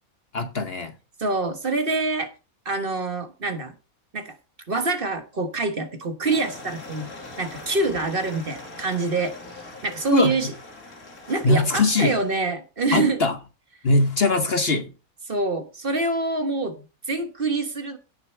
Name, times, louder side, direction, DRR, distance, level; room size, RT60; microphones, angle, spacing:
voice 1, 0.3-0.9 10.1-10.4 11.4-12.2 12.9-13.4 13.8-14.9, left 3 dB, 50° left, 1.0 m, -21 dB
voice 2, 1.2-2.3 2.6-3.7 4.1-4.4 4.7-7.1 7.4-9.3 9.8-10.5 11.3-13.2 15.3-18.0, right 3 dB, 40° right, 1.4 m, -25 dB
sound 1, 6.2-12.4, left 2 dB, 85° left, 2.7 m, -42 dB
17.0 x 6.7 x 3.3 m
omnidirectional pair, 1.5 m